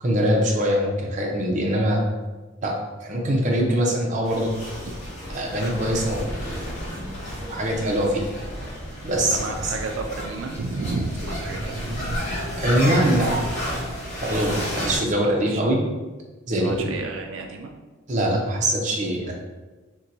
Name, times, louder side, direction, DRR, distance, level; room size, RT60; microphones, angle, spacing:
voice 1, 0.0-2.0 2.6-4.5 5.3-6.4 6.9-7.1 7.4-8.2 9.0-9.7 12.6-13.5 14.2-15.8 16.5-16.9 18.1-19.3, right 1 dB, 40° right, -1 dB, 0.6 m, -23 dB
sound 1, 4.2-15.0, equal, 40° left, 1.4 m, -31 dB
voice 2, 9.3-12.2 14.7-14.9 15.1-15.6 16.6-17.7, right 3 dB, 90° right, 3 dB, 0.4 m, -32 dB
2.7 x 2.2 x 3.9 m, 1.2 s
head